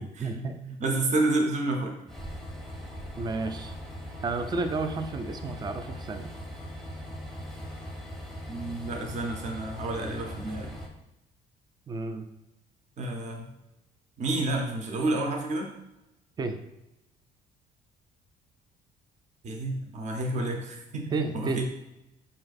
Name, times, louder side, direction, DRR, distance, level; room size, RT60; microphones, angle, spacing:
voice 1, 0.0-0.6 3.2-3.7 4.2-6.3 11.9-12.3 16.4-16.6 21.1-21.7, right 3 dB, 25° right, 7 dB, 0.4 m, -32 dB
voice 2, 0.6-2.0 8.5-10.7 13.0-13.5 14.2-15.7 19.4-21.6, right 2 dB, 45° right, 2 dB, 0.8 m, -30 dB
Train, 2.1-10.9, equal, ahead, 0.7 m, -40 dB
4.3 x 2.6 x 4.0 m, 0.93 s
cardioid pair, 110°, 17 cm